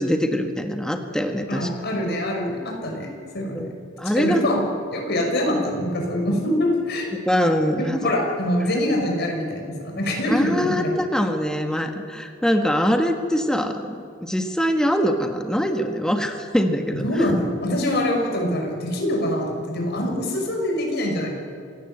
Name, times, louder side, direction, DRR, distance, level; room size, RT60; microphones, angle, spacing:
voice 1, 0.0-1.7 3.5-3.7 4.0-4.4 7.3-8.1 10.3-14.0 14.2-17.2, equal, 5° left, 4 dB, 1.5 m, -23 dB
voice 2, 1.5-3.7 4.1-4.6 4.9-7.1 7.8-10.9 17.0-21.3, left 1 dB, 55° left, 1 dB, 5.9 m, -24 dB
27.5 x 17.0 x 8.0 m, 2.4 s
head